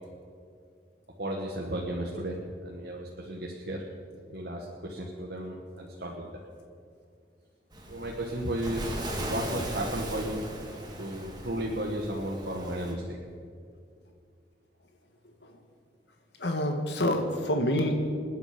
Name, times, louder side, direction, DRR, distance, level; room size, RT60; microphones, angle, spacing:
voice 1, 1.2-2.4 2.6-3.8 4.3-6.3 7.9-10.5 11.0-13.2, right 1 dB, 60° right, -2 dB, 1.7 m, -34 dB
Waves surf, 7.7-12.9, right 1 dB, 25° right, 2.3 m, -38 dB
voice 2, 16.4-17.9, left 1 dB, 70° left, 4 dB, 1.6 m, -27 dB
27.5 x 10.0 x 5.3 m, 2.3 s
head